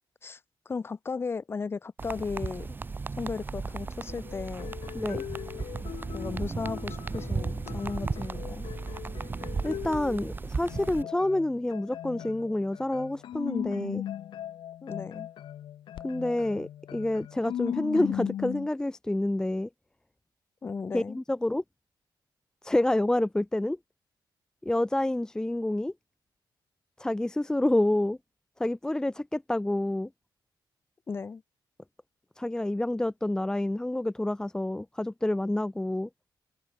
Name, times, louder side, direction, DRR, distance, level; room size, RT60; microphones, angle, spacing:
voice 1, 0.7-2.8 3.2-4.7 6.1-8.7 14.8-15.3 20.6-21.2 31.1-31.4, left 5 dB, 30° left, 1.7 m, -35 dB
sound 1, 2.0-11.0, right 4 dB, 25° right, 1.7 m, -35 dB
sound 2, 4.1-10.3 10.7-18.7, left 11 dB, 80° left, 0.7 m, -38 dB
voice 2, 9.6-14.0 16.0-19.7 20.9-21.6 22.6-23.8 24.6-25.9 27.0-28.2 28.6-30.1 32.4-36.1, left 1 dB, 10° left, 0.8 m, -28 dB
wide cardioid pair, 165°, 8 cm